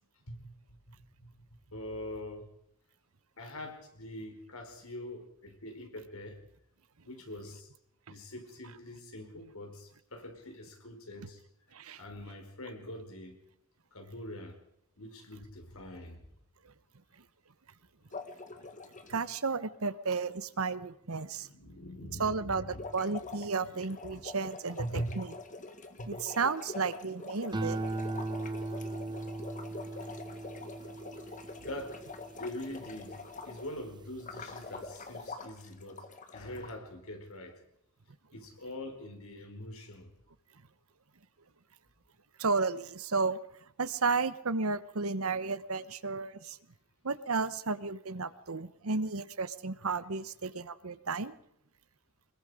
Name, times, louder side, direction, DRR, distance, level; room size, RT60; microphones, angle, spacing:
voice 1, 0.3-2.5 3.4-6.4 7.0-7.7 8.1-11.4 11.7-13.4 13.9-14.6 15.0-16.3 18.6-18.7 21.3-23.3 23.6-23.7 24.0-24.2 24.8-25.1 26.0-26.2 31.4-36.0 36.3-37.6 38.3-40.1, left 1 dB, 85° left, 4 dB, 4.8 m, -44 dB
voice 2, 11.7-12.0 19.1-21.5 22.2-22.7 22.9-24.8 25.2-25.3 26.1-27.8 42.4-43.4 43.8-46.6 47.0-51.3, right 4 dB, 85° right, 14 dB, 1.1 m, -33 dB
sound 1, 18.1-19.3 22.6-33.7 34.2-36.7, left 3 dB, 35° left, 1.8 m, -45 dB
sound 2, 27.5-34.0 34.5-35.0, right 2 dB, 20° right, 1.0 m, -39 dB
24.5 x 21.5 x 5.0 m, 0.75 s
head